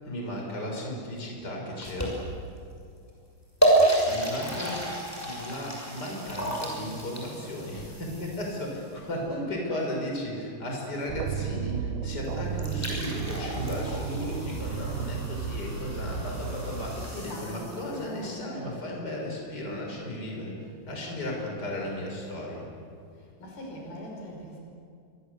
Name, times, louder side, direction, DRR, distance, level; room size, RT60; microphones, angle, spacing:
voice 1, 0.0-2.2 4.0-4.8 5.2-22.7, left 1 dB, 20° left, 0 dB, 6.1 m, -35 dB
sound 1, 1.8-2.5 3.1-3.2 3.6-8.9 12.2-12.3 12.5-18.1, right 1 dB, 5° left, 5.8 m, -30 dB
sound 2, 11.1-17.1, right 7 dB, 80° right, 1.9 m, -34 dB
voice 2, 16.7-18.4 21.2-21.3 23.1-24.6, left 1 dB, 60° left, 0 dB, 7.2 m, -42 dB
28.0 x 24.0 x 8.2 m, 2.3 s
omnidirectional pair, 5.0 m